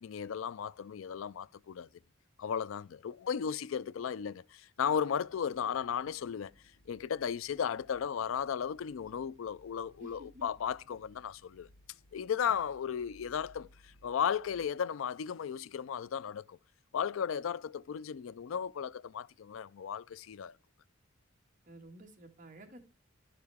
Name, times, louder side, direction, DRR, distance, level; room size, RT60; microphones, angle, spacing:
voice 1, 0.0-1.9 2.4-6.5 6.9-11.7 12.1-16.6 16.9-20.6, left 7 dB, 80° left, 0.4 m, -35 dB
sound 1, 5.1-14.7, left 1 dB, 50° left, 0.8 m, -63 dB
voice 2, 10.0-10.5 12.4-12.6 21.6-22.8, right 1 dB, 40° right, 2.1 m, -52 dB
11.5 x 6.5 x 3.5 m
head